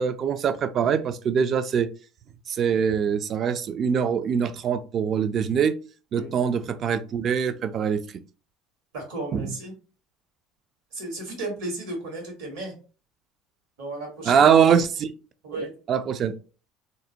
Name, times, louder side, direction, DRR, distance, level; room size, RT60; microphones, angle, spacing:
voice 1, 0.0-1.9 2.5-5.8 6.1-8.0 9.3-9.5 14.3-15.1 15.5-16.3, right 7 dB, 45° right, 0.3 m, -23 dB
voice 2, 8.9-9.7 10.9-12.7 13.8-14.6 15.4-15.7, right 2 dB, 75° right, 1.3 m, -34 dB
2.5 x 2.0 x 2.7 m
supercardioid pair, 90°, 0 cm